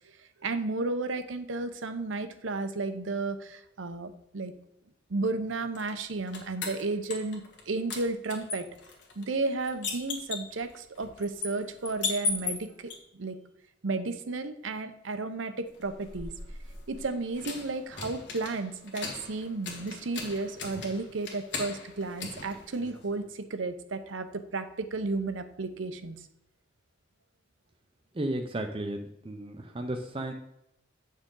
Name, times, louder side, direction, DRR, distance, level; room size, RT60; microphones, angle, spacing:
voice 1, 0.4-4.5 5.1-8.7 9.2-13.4 13.8-16.3 16.9-26.2, right 3 dB, 80° right, 9 dB, 0.7 m, -33 dB
sound 1, 5.8-7.6 7.9-13.0 15.7-23.2, left 4 dB, 60° left, 1.6 m, -38 dB
voice 2, 28.1-30.3, right 1 dB, 30° right, 5 dB, 0.5 m, -34 dB
8.6 x 6.4 x 3.7 m, 0.81 s
head